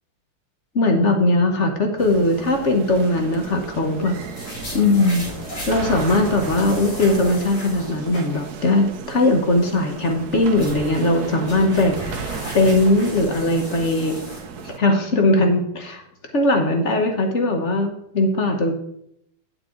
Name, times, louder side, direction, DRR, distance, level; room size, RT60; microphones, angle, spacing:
voice 1, 0.7-4.2 4.7-5.3 5.7-14.1 14.6-16.0 16.3-18.7, left 2 dB, 45° left, 4 dB, 0.9 m, -19 dB
sound 1, 2.0-14.8, right 5 dB, 60° right, 1.1 m, -35 dB
sound 2, 4.2-8.7 9.0-9.1 10.0-14.4, equal, 85° left, 4.5 m, -36 dB
8.6 x 8.6 x 3.7 m, 0.75 s
omnidirectional pair, 2.4 m